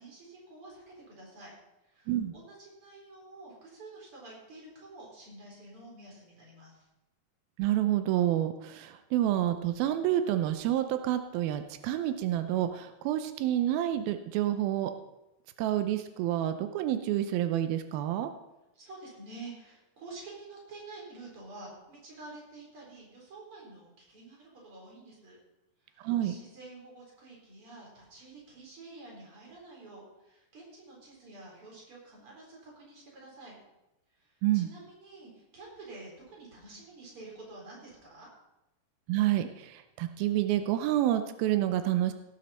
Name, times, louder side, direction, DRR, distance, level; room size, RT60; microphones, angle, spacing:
voice 1, 0.0-1.5 1.8-6.9 18.7-25.4 25.8-33.6 34.2-38.3, right 2 dB, 35° right, -2 dB, 4.7 m, -49 dB
voice 2, 7.6-14.9 15.6-18.3 26.0-26.4 34.4-34.7 39.1-42.1, right 12 dB, 90° right, 9 dB, 2.6 m, -28 dB
17.0 x 9.7 x 4.3 m, 0.96 s
omnidirectional pair, 4.1 m